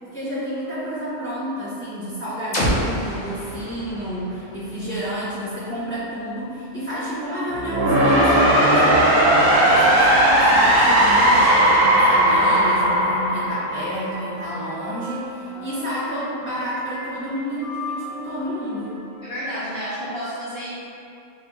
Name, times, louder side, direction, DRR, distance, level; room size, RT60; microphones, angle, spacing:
voice 1, 0.0-9.0 9.6-19.0, equal, 10° left, -12 dB, 0.8 m, -29 dB
sound 1, 2.5-6.4, equal, 85° left, 1.5 m, -29 dB
sound 2, 7.2-20.0, left 1 dB, 30° right, 0.4 m, -36 dB
sound 3, 7.5-14.4, right 1 dB, 75° right, 1.0 m, -17 dB
voice 2, 9.4-9.9 15.5-15.6 19.2-20.7, equal, 55° left, -9 dB, 0.8 m, -31 dB
3.2 x 2.8 x 3.5 m, 2.6 s
omnidirectional pair, 1.4 m